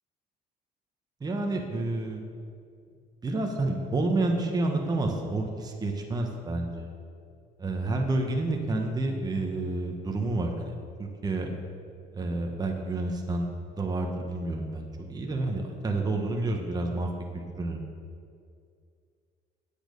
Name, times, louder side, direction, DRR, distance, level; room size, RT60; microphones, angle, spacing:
voice 1, 1.2-2.2 3.2-6.9 7.6-10.7 11.0-11.5 12.1-13.5 13.7-17.1 17.5-17.8, right 2 dB, 25° right, 2 dB, 1.1 m, -29 dB
8.9 x 8.4 x 5.2 m, 2.3 s
cardioid pair, 110°, 17 cm